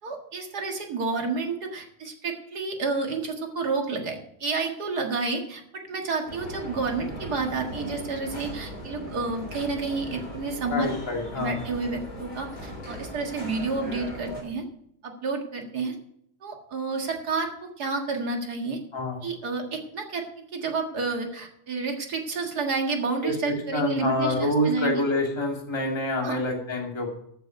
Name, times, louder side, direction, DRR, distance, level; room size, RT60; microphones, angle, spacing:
voice 1, 0.0-10.9 11.4-14.6 15.0-16.0 16.4-18.8 19.2-20.3 20.5-25.0 26.2-26.4, right 4 dB, 40° right, 3 dB, 1.9 m, -30 dB
sound 1, 6.3-14.4, left 1 dB, 30° left, 4.3 m, -38 dB
voice 2, 10.7-11.5 18.9-19.2 23.2-27.1, left 1 dB, 10° left, 0 dB, 2.1 m, -27 dB
14.0 x 8.0 x 5.2 m, 0.72 s
omnidirectional pair, 3.4 m